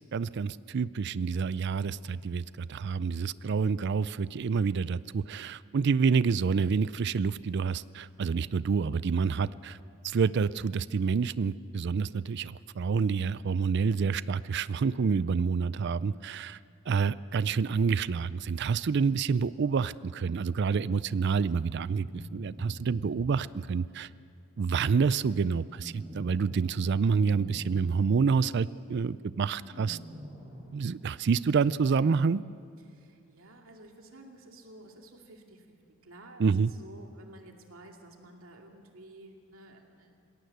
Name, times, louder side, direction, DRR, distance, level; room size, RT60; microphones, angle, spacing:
voice 1, 0.0-9.8 10.0-16.6 16.9-22.1 22.3-24.1 24.6-30.0 30.7-32.4 36.4-36.7, right 5 dB, 55° right, 18 dB, 0.4 m, -28 dB
sound 1, 21.8-23.3 25.6-26.7 27.0-27.7 29.5-30.7, equal, 30° right, 5.8 m, -46 dB
voice 2, 32.8-40.1, right 1 dB, 90° right, 2 dB, 2.4 m, -53 dB
20.0 x 16.5 x 8.0 m, 2.4 s
head